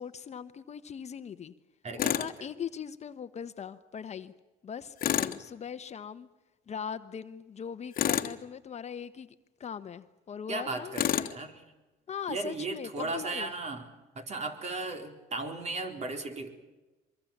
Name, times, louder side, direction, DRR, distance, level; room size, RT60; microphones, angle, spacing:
voice 1, 0.0-1.5 2.0-4.3 4.6-6.3 6.7-9.3 9.6-11.5 12.1-13.5, left 7 dB, 40° left, 11 dB, 1.1 m, -40 dB
voice 2, 1.8-2.3 10.5-11.5 12.3-13.9 14.1-16.5, right 3 dB, 40° right, 5 dB, 4.1 m, -36 dB
Tools, 2.0-2.3 5.0-5.4 7.9-8.4 10.9-11.4, left 11 dB, 55° left, 1.4 m, -28 dB
24.0 x 23.5 x 7.4 m, 1.1 s
cardioid pair, 110°, 17 cm